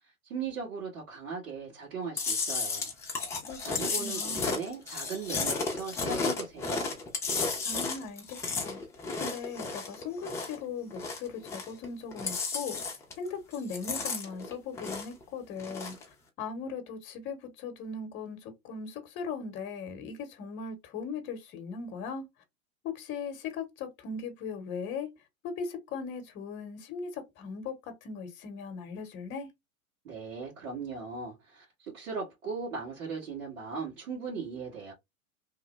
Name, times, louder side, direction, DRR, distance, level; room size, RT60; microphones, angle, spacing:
voice 1, 0.2-2.9 3.6-7.0 30.0-34.9, right 5 dB, 60° right, 1.7 m, -38 dB
Chewing mastication, 2.2-10.6 10.9-11.9 12.1-13.3 13.5-15.2 15.6-16.0, left 4 dB, 5° left, 0.4 m, -33 dB
voice 2, 3.4-4.6 7.6-8.8 9.2-22.3 22.8-25.1 25.4-27.8 28.0-29.5, left 5 dB, 25° left, 0.8 m, -39 dB
3.0 x 2.1 x 3.0 m
hypercardioid pair, 105°, 43 cm